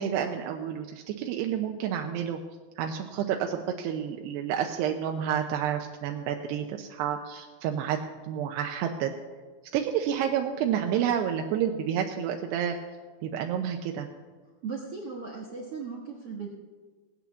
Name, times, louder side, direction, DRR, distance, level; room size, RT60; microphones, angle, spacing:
voice 1, 0.0-2.4 2.8-8.0 8.3-9.1 9.7-12.8 13.2-14.1, right 9 dB, 90° right, 3 dB, 2.9 m, -29 dB
voice 2, 14.6-16.5, right 5 dB, 60° right, -1 dB, 1.5 m, -37 dB
19.0 x 8.5 x 7.0 m, 1.4 s
omnidirectional pair, 4.7 m